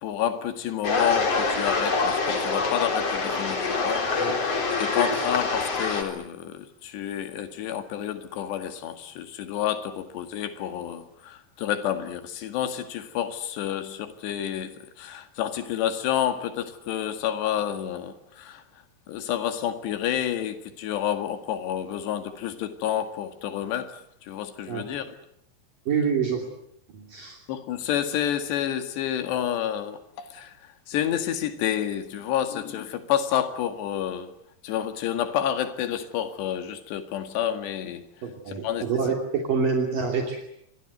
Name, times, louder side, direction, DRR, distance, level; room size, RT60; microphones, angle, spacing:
voice 1, 0.0-4.4 4.7-18.6 19.1-25.2 27.5-34.3 34.6-38.0 38.5-38.8, left 10 dB, 80° left, 4.1 m, -29 dB
sound 1, 0.8-6.0, left 4 dB, 40° left, 4.4 m, -25 dB
voice 2, 25.9-26.4 26.9-27.4 38.2-40.4, right 5 dB, 55° right, 4.3 m, -26 dB
27.5 x 23.5 x 8.0 m
omnidirectional pair, 4.8 m